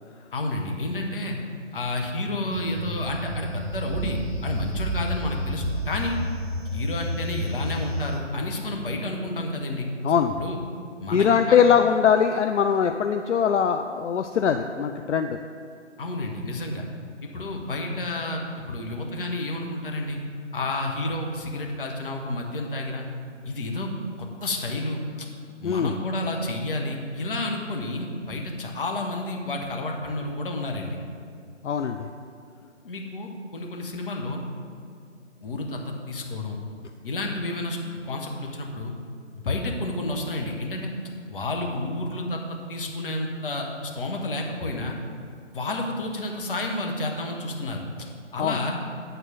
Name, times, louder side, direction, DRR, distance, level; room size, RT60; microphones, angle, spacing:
voice 1, 0.3-1.4 1.7-6.2 6.7-9.9 10.4-10.6 11.0-11.6 16.0-16.9 17.2-18.4 18.7-20.2 20.5-23.1 23.4-23.9 24.2-25.3 25.6-31.0 32.8-34.4 35.4-36.6 37.0-37.8 38.0-38.9 39.3-40.9 41.3-45.0 45.5-47.9 48.3-48.8, left 2 dB, 45° left, 1 dB, 1.2 m, -30 dB
sound 1, 2.5-8.2, equal, 60° right, 1.3 m, -31 dB
voice 2, 10.0-10.3 11.1-15.4 25.6-25.9 31.6-32.1 48.4-48.6, left 7 dB, 70° left, 7 dB, 0.5 m, -21 dB
9.0 x 4.3 x 6.6 m, 2.3 s
figure-of-eight pair, 145°, 37 cm